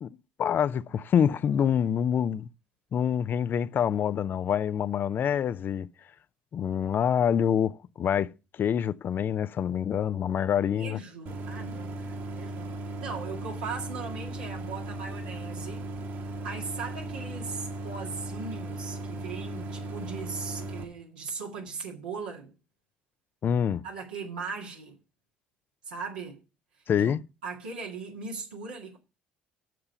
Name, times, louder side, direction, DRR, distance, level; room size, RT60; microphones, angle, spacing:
voice 1, 0.4-2.5 2.9-5.9 6.5-11.0 23.4-23.8 26.9-27.2, left 8 dB, 45° left, 0.5 m, -26 dB
voice 2, 10.7-15.9 16.4-22.5 23.8-25.0 25.9-26.4 27.0-29.0, right 5 dB, 85° right, 2.0 m, -39 dB
Idling, 11.3-20.8, right 2 dB, 65° right, 2.5 m, -37 dB
7.6 x 6.8 x 6.7 m
hypercardioid pair, 55°, 5 cm